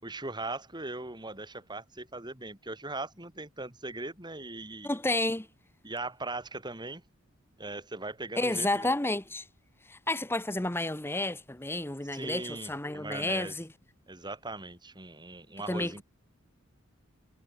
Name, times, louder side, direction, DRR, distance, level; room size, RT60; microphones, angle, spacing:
voice 1, 0.0-5.0 5.8-7.0 7.6-8.9 12.1-13.5 14.1-16.0, right 2 dB, 20° right, 4.6 m, -39 dB
voice 2, 4.8-5.5 8.4-9.5 9.9-13.7 15.7-16.0, left 2 dB, 10° left, 1.1 m, -31 dB
head